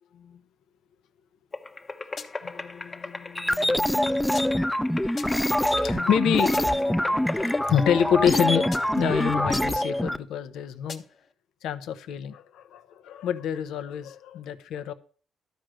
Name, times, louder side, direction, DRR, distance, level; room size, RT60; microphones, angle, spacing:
sound 1, 1.5-8.7, left 3 dB, 30° left, 1.0 m, -39 dB
sound 2, 2.2-2.6 4.3-4.8 5.2-5.6 6.5-7.0 8.7-9.1 9.5-10.0 10.9-11.3, left 4 dB, 50° left, 1.4 m, -42 dB
voice 1, 2.4-4.1 5.0-5.1 5.7-8.7 8.9-11.0 11.6-14.9, left 8 dB, 85° left, 0.9 m, -28 dB
sound 3, 3.3-10.2, left 1 dB, 5° left, 0.5 m, -25 dB
12.5 x 5.1 x 7.6 m
cardioid pair, 90°, 0 cm